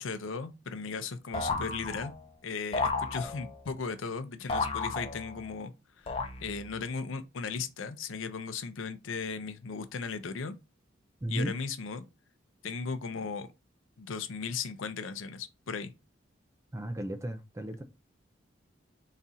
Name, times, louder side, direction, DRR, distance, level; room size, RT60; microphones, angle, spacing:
voice 1, 0.0-2.1 2.4-10.6 11.3-12.0 12.6-13.5 14.0-15.9, left 5 dB, 85° left, 0.6 m, -37 dB
sound 1, 1.3-2.3 2.7-3.7 4.5-5.5 6.1-6.8, left 4 dB, 30° left, 0.6 m, -33 dB
voice 2, 11.2-11.5 16.7-17.8, right 1 dB, 15° right, 0.4 m, -34 dB
4.0 x 2.4 x 4.0 m
head